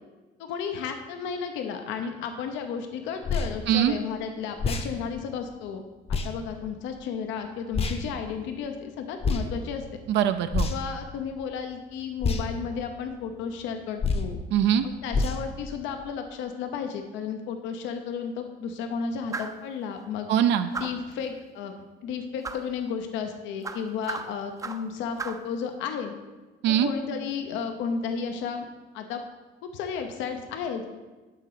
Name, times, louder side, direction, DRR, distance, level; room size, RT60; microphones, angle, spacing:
voice 1, 0.4-5.8 6.1-9.8 10.7-14.4 14.8-20.3 20.8-21.7 22.0-26.1 26.7-28.7 28.9-29.2 29.6-30.8, left 6 dB, 80° left, 6 dB, 0.8 m, -33 dB
sound 1, 3.2-3.5 4.6-4.9 6.1-6.3 7.7-8.0 9.2-9.5 10.5-10.9 12.2-12.4 14.0-14.3 15.1-15.4, left 4 dB, 30° left, 0.8 m, -26 dB
voice 2, 10.1-10.7 14.5-14.9 20.3-20.7 26.6-26.9, right 10 dB, 70° right, 9 dB, 0.5 m, -22 dB
sound 2, 19.3-19.6 20.7-21.1 22.4-22.7 23.6-24.9 25.2-25.5, right 4 dB, 15° right, 0.5 m, -35 dB
9.8 x 3.8 x 6.7 m, 1.2 s
cardioid pair, 110°, 19 cm